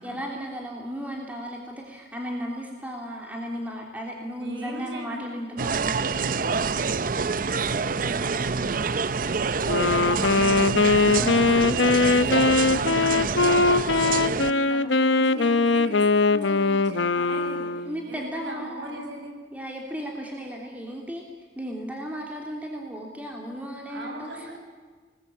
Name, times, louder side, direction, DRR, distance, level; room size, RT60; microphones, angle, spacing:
voice 1, 0.0-6.4 10.7-10.9 17.9-19.0 19.5-21.2 21.5-24.5, equal, 10° right, 0 dB, 3.2 m, -35 dB
voice 2, 4.4-5.3 5.7-6.4 7.2-19.3 23.9-24.6, right 1 dB, 85° right, 2 dB, 7.9 m, -39 dB
sound 1, 5.6-14.5, right 5 dB, 50° right, 0.7 m, -26 dB
Wind instrument woodwind instrument, 9.7-18.0, left 3 dB, 90° left, 0.9 m, -21 dB
27.5 x 20.0 x 8.8 m, 1.4 s
head